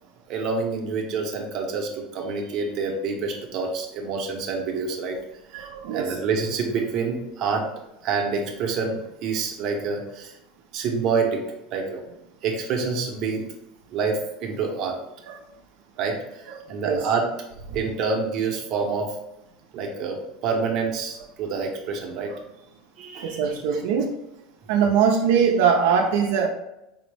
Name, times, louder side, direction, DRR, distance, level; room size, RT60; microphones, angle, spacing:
voice 1, 0.3-5.2 5.5-7.7 8.0-10.4 10.7-12.0 12.4-13.5 13.9-15.0 16.0-17.3 17.7-19.2 19.7-22.3 23.0-23.8, right 5 dB, 40° right, 1 dB, 0.7 m, -27 dB
voice 2, 5.5-6.2 15.3-15.4 16.8-17.0 23.2-24.1 24.7-26.5, right 6 dB, 80° right, 2 dB, 0.4 m, -21 dB
4.3 x 2.0 x 3.2 m, 0.89 s
cardioid pair, 165°, 0 cm